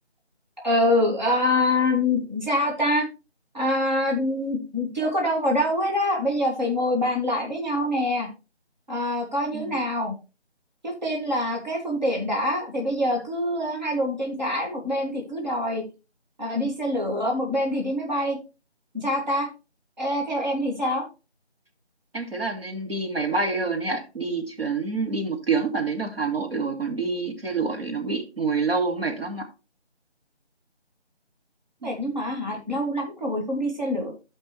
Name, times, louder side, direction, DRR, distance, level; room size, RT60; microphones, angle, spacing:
voice 1, 0.6-3.0 3.5-8.3 8.9-10.2 10.8-15.8 16.4-18.4 18.9-19.5 20.0-21.0 31.8-34.1, left 1 dB, 40° right, 2.3 m, -25 dB
voice 2, 22.1-29.5 31.8-31.9, right 4 dB, 60° right, 2.3 m, -27 dB
13.0 x 5.3 x 3.2 m
figure-of-eight pair, 180°, 34 cm